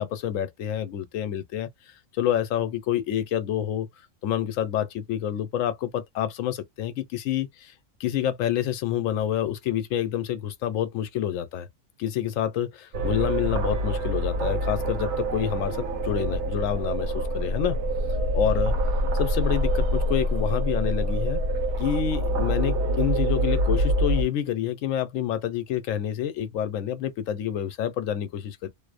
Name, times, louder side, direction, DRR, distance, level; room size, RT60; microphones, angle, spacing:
voice 1, 0.0-3.9 4.2-7.7 8.0-11.7 12.0-17.8 18.3-18.7 19.2-21.4 21.8-28.7, left 10 dB, 85° left, 1.0 m, -28 dB
sound 1, 12.9-24.2, equal, 70° right, 0.8 m, -25 dB
2.5 x 2.0 x 2.4 m
omnidirectional pair, 1.3 m